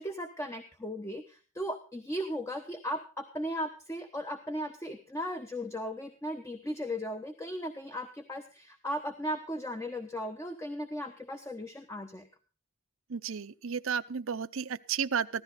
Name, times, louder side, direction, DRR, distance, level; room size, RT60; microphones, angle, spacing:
voice 1, 0.0-12.3, equal, 15° left, 6 dB, 1.0 m, -37 dB
voice 2, 13.1-15.4, right 6 dB, 70° right, 13 dB, 0.7 m, -33 dB
15.5 x 13.0 x 4.1 m, 0.36 s
head